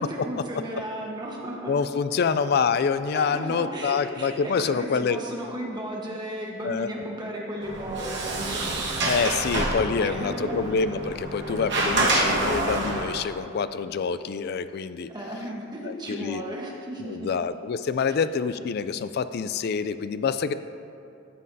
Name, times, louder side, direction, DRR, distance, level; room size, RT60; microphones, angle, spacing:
voice 1, 0.0-1.7 2.1-2.3 3.1-8.6 10.0-10.7 15.1-17.3 18.1-18.2, right 1 dB, 20° right, -2 dB, 1.2 m, -35 dB
voice 2, 1.7-5.2 6.6-6.9 9.0-15.1 15.8-16.4 17.0-20.5, left 5 dB, 50° left, 13 dB, 0.3 m, -26 dB
Sliding door, 7.6-13.2, right 2 dB, 60° right, 1.5 m, -27 dB
13.5 x 7.7 x 2.7 m, 2.7 s
head